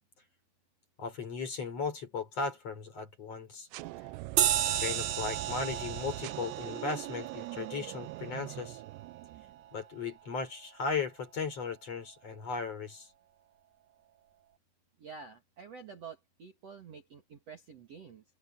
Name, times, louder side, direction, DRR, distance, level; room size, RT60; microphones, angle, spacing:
voice 1, 1.0-3.7 4.6-8.8 9.7-13.1, left 4 dB, 35° left, 4.7 m, -36 dB
sound 1, 3.7-9.7, right 19 dB, 80° right, 2.7 m, -42 dB
sound 2, 4.4-9.3, right 11 dB, 65° right, 2.1 m, -34 dB
voice 2, 15.0-18.2, right 6 dB, 45° right, 2.3 m, -48 dB
omnidirectional pair, 5.2 m